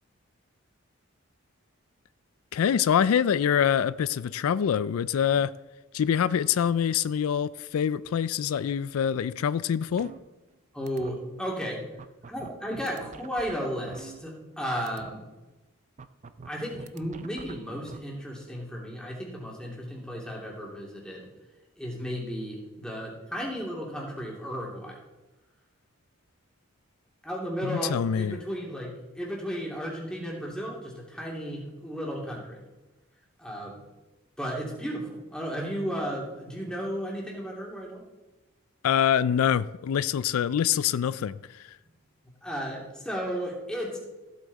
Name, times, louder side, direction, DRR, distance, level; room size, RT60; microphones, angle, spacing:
voice 1, 2.5-5.5 5.9-10.1 27.6-28.4 38.8-41.8, left 8 dB, 85° left, 0.4 m, -25 dB
sound 1, 10.0-10.6 10.9-11.1 11.6-11.7 12.0-14.6 14.9-15.1 16.0-18.0, right 5 dB, 35° right, 0.4 m, -45 dB
voice 2, 10.7-11.8 12.3-15.3 16.4-21.3 21.8-25.0 27.2-32.6 33.4-33.8 34.4-38.0 42.4-44.0, equal, 5° left, 2.6 m, -34 dB
15.0 x 8.3 x 4.1 m
head